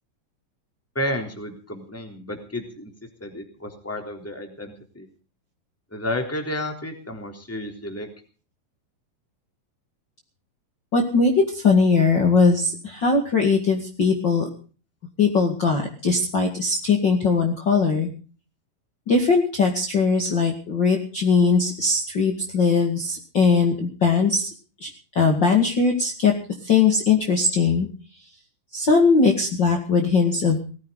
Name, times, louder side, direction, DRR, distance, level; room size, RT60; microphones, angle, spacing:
voice 1, 0.9-2.9 3.2-5.1 5.9-8.1, left 1 dB, 5° left, 3 dB, 3.1 m, -31 dB
voice 2, 10.9-14.5 15.2-18.1 19.1-24.5 24.8-24.9 25.2-26.3 26.6-27.9 28.7-30.6, left 4 dB, 35° left, 2 dB, 2.5 m, -20 dB
19.5 x 15.5 x 4.0 m, 0.38 s
omnidirectional pair, 3.9 m